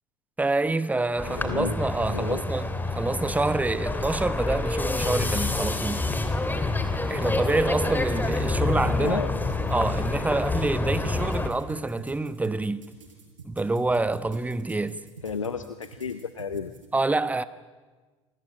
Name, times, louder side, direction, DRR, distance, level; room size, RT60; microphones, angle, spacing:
voice 1, 0.4-6.0 7.1-9.2 9.7-12.8 13.4-15.0 16.9-17.4, right 2 dB, 10° right, 1.2 m, -27 dB
voice 2, 1.2-1.8 2.1-2.4 8.9-9.3 15.2-16.7, left 6 dB, 85° left, 0.9 m, -32 dB
sound 1, 1.2-11.5, left 3 dB, 10° left, 2.8 m, -27 dB
sound 2, 10.9-16.9, right 4 dB, 80° right, 6.0 m, -46 dB
28.0 x 20.5 x 9.0 m
figure-of-eight pair, 70°, 16 cm